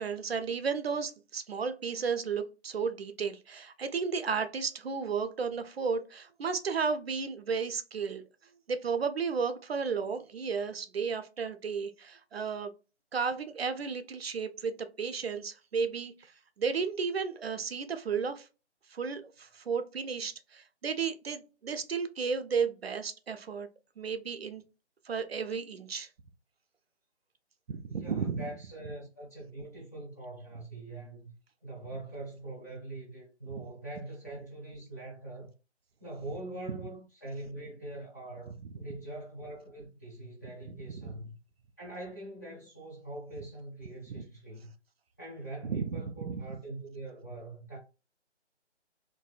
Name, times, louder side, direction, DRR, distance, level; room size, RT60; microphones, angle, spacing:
voice 1, 0.0-8.2 8.7-12.7 13.1-16.3 16.6-18.5 18.9-23.7 24.0-24.6 25.1-26.1 27.7-28.4 40.9-41.1 44.1-44.2 45.6-46.4, right 5 dB, 60° right, 0.5 m, -33 dB
voice 2, 27.9-31.3 31.6-35.5 36.0-41.4 41.8-44.7 45.2-47.8, right 2 dB, 15° left, 0.5 m, -43 dB
3.1 x 2.5 x 2.3 m
figure-of-eight pair, 155°, 35 cm